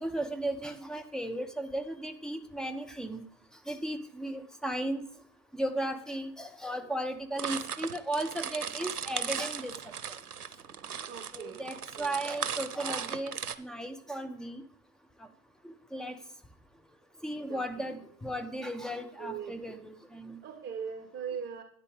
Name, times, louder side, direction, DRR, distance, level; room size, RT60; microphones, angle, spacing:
voice 1, 0.0-3.2 3.7-5.0 5.5-9.7 11.3-14.6 15.6-16.2 17.2-20.4, right 1 dB, ahead, 8 dB, 1.0 m, -35 dB
sound 1, 7.4-13.6, right 7 dB, 90° right, 0.7 m, -37 dB
voice 2, 11.0-12.2 17.5-17.9 19.2-19.8 20.4-21.6, right 7 dB, 25° right, 6 dB, 1.2 m, -41 dB
12.5 x 9.7 x 3.6 m, 0.63 s
figure-of-eight pair, 85°, 44 cm